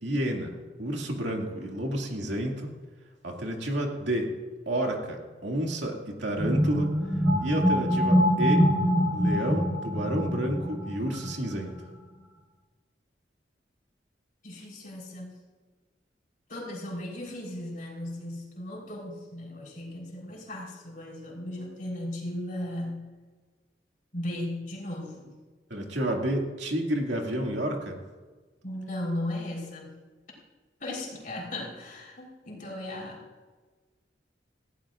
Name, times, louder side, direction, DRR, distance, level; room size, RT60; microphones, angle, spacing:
voice 1, 0.0-0.5 0.8-2.7 3.2-4.3 4.7-6.9 7.4-8.7 9.1-11.8 25.7-28.0, right 1 dB, 80° right, 0 dB, 2.3 m, -30 dB
sound 1, 6.4-11.7, equal, 10° right, 4.8 m, -25 dB
voice 2, 14.4-15.3 16.5-23.1 24.1-25.3 28.6-30.0 30.8-33.2, left 1 dB, 50° left, -2 dB, 4.0 m, -36 dB
18.5 x 16.0 x 2.5 m, 1.3 s
head